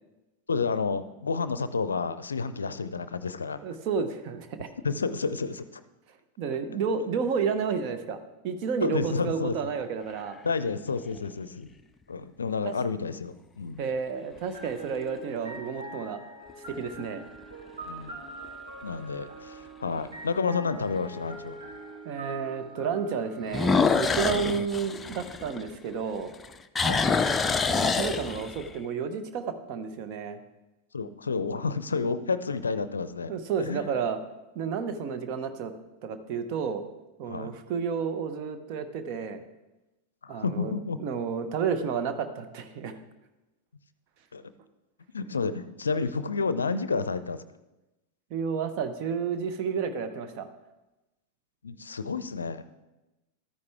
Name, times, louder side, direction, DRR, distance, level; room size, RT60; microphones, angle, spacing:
voice 1, 0.5-3.6 4.8-5.8 8.8-9.6 10.4-11.7 12.1-13.8 17.8-18.1 18.8-21.6 26.8-27.0 30.9-33.3 33.6-33.8 37.3-37.5 40.2-41.0 44.3-44.4 45.1-47.4 51.6-52.6, left 4 dB, 75° left, 14 dB, 0.5 m, -30 dB
voice 2, 3.6-4.7 6.4-8.2 8.4-10.4 12.6-12.7 13.8-16.2 16.7-17.2 20.8-20.9 22.0-26.3 27.7-30.4 33.3-34.2 34.5-35.7 36.0-36.9 37.2-39.4 40.3-40.7 41.0-43.0 48.3-50.5, right 6 dB, 45° right, 9 dB, 0.9 m, -31 dB
sound 1, 9.8-10.5 11.2-11.3 16.5-17.0 17.4-17.5 18.1-18.2 18.4-18.5 20.0-20.1 23.5-26.0 26.3-28.7, left 4 dB, 15° left, 0.5 m, -26 dB
sound 2, 14.5-24.3, right 2 dB, 70° right, 2.5 m, -44 dB
13.0 x 9.5 x 3.5 m, 1.0 s
figure-of-eight pair, 90°, 0 cm